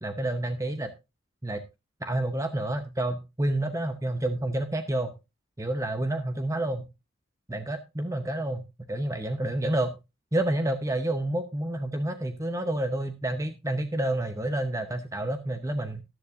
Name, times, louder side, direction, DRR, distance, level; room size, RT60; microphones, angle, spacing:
voice 1, 0.0-0.9 1.4-1.6 2.0-5.2 5.6-6.9 7.5-10.0 10.3-16.0, right 1 dB, 15° right, 8 dB, 0.8 m, -29 dB
14.0 x 11.0 x 2.5 m, 0.25 s
head